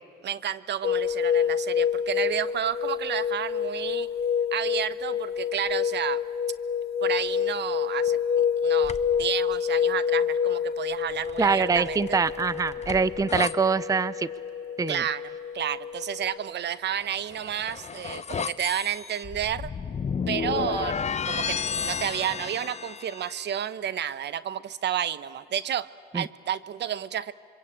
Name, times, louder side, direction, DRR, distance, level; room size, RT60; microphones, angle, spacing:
voice 1, 0.2-4.1 4.5-6.2 7.0-12.2 14.9-15.2 15.5-19.7 20.3-25.9 26.1-27.3, right 9 dB, 60° right, 17 dB, 0.8 m, -31 dB
sound 1, 0.8-16.4, left 8 dB, 55° left, 1.7 m, -28 dB
sound 2, 8.8-9.3 11.1-13.5 17.0-23.4, left 6 dB, 35° left, 0.8 m, -33 dB
voice 2, 11.4-14.3 14.8-15.0 26.1-26.2, right 5 dB, 15° right, 18 dB, 0.5 m, -24 dB
26.5 x 24.0 x 8.7 m, 2.6 s
cardioid pair, 90°, 20 cm